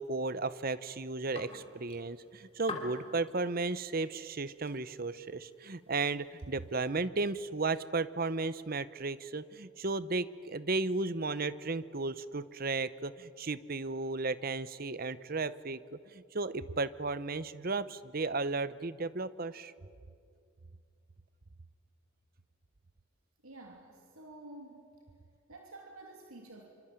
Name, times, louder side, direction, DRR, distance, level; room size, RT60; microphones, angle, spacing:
voice 1, 0.0-19.7, right 3 dB, 40° right, 16 dB, 0.8 m, -34 dB
sound 1, 0.9-6.8, left 3 dB, 25° left, 3.0 m, -49 dB
voice 2, 23.4-24.9 25.5-26.7, right 2 dB, 80° right, 2 dB, 3.0 m, -50 dB
26.0 x 25.0 x 9.0 m, 2.3 s
head